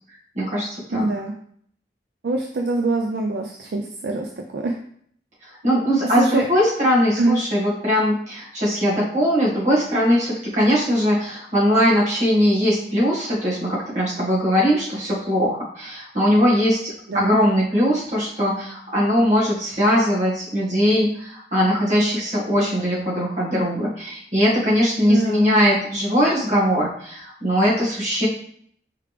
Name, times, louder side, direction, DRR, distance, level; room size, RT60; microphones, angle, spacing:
voice 1, 0.4-1.1 5.6-28.3, equal, 40° right, -7 dB, 1.7 m, -20 dB
voice 2, 0.9-1.3 2.2-4.8 6.0-6.5 7.2-7.4 17.1-17.3 25.1-25.6, right 2 dB, 65° right, 2 dB, 0.4 m, -24 dB
4.7 x 3.2 x 3.3 m, 0.63 s
head